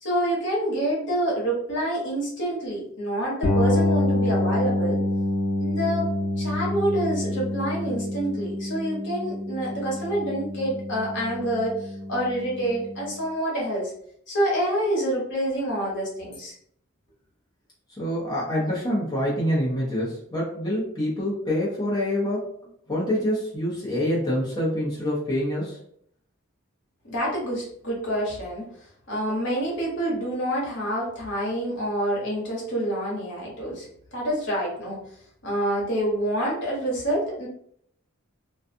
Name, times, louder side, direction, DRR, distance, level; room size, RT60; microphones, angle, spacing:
voice 1, 0.0-5.0 5.6-6.1 6.4-13.9 14.3-16.5 27.1-28.6 29.1-35.0 35.4-37.5, right 1 dB, 60° left, -4 dB, 1.0 m, -27 dB
sound 1, 3.4-13.1, left 1 dB, 80° left, 0.8 m, -27 dB
voice 2, 17.9-22.5 22.9-25.8, equal, 20° left, -7 dB, 0.6 m, -26 dB
2.4 x 2.3 x 2.6 m, 0.66 s
head